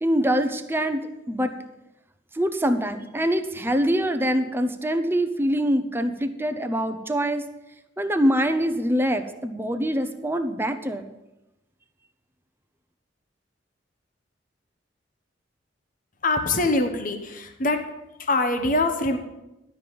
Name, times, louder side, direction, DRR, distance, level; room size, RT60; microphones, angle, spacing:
voice 1, 0.0-1.5 2.3-7.4 8.0-11.1, equal, 10° right, 7 dB, 0.7 m, -24 dB
voice 2, 16.2-17.8 18.2-19.2, left 2 dB, 50° left, 6 dB, 1.1 m, -23 dB
12.0 x 5.3 x 7.7 m, 0.97 s
head